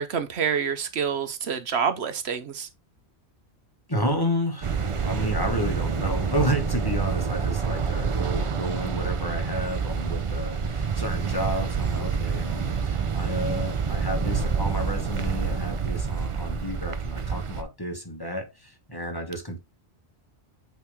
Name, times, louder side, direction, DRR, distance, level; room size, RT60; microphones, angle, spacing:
voice 1, 0.0-2.7, right 7 dB, 75° right, 1.1 m, -27 dB
voice 2, 3.9-19.6, equal, 20° left, 1.3 m, -31 dB
sound 1, 4.6-17.6, right 5 dB, 40° right, 0.5 m, -27 dB
8.4 x 3.3 x 3.5 m
omnidirectional pair, 1.1 m